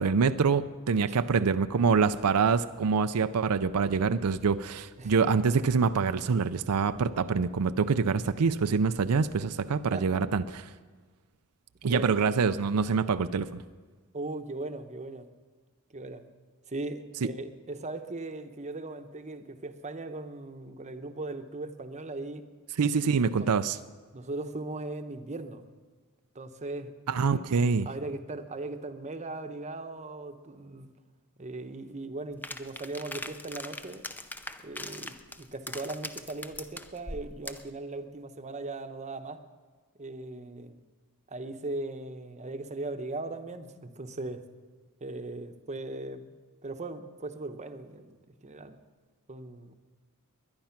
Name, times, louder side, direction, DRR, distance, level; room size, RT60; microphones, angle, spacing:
voice 1, 0.0-10.4 11.8-13.6 22.8-23.8 27.1-27.9, right 5 dB, 90° right, 11 dB, 0.5 m, -25 dB
voice 2, 9.9-10.2 11.8-12.1 14.1-15.3 15.9-16.3 16.7-22.4 23.3-23.5 24.1-25.6 26.3-26.9 27.2-27.5 27.8-30.9 31.4-34.0 34.6-39.4 40.0-40.8 41.3-44.4 45.0-46.3 46.6-48.8 49.3-49.7, right 2 dB, 30° right, 8 dB, 0.9 m, -38 dB
sound 1, 32.4-37.7, left 2 dB, 10° left, 0.5 m, -41 dB
21.0 x 10.5 x 5.8 m, 1.4 s
head